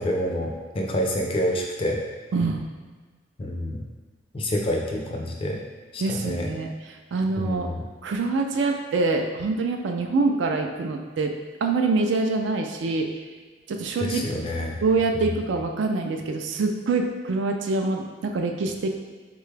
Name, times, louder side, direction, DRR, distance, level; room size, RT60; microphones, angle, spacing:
voice 1, 0.0-2.0 3.4-3.9 4.3-5.6 5.9-6.5 7.4-7.8 14.0-14.8 15.1-15.2, equal, 30° left, 0 dB, 0.4 m, -27 dB
voice 2, 2.3-2.6 6.0-7.7 8.0-11.3 11.6-13.2 13.7-14.3 14.8-18.9, right 3 dB, 65° right, 4 dB, 0.3 m, -25 dB
3.9 x 2.3 x 3.2 m, 1.4 s
head